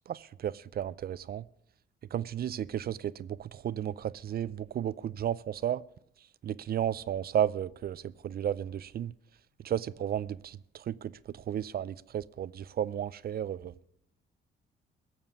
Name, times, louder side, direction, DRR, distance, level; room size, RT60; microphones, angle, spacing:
voice 1, 0.1-1.5 2.1-5.8 6.4-9.1 9.6-13.7, right 10 dB, 50° right, 0.5 m, -33 dB
16.5 x 7.2 x 8.2 m
cardioid pair, 90°, 20 cm